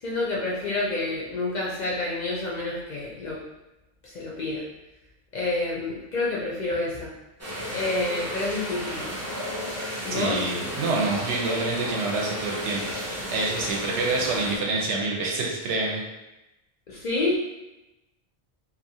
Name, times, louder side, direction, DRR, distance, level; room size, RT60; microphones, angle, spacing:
voice 1, 0.0-3.4 4.1-4.6 5.3-7.1 7.7-9.1 10.0-10.5 16.9-17.4, left 2 dB, 60° left, -4 dB, 0.5 m, -28 dB
sound 1, 7.4-14.6, equal, 25° right, 0.3 m, -33 dB
voice 2, 10.1-13.0 13.3-16.0, right 3 dB, 90° right, -1 dB, 0.9 m, -27 dB
2.7 x 2.3 x 2.7 m, 0.98 s
omnidirectional pair, 1.1 m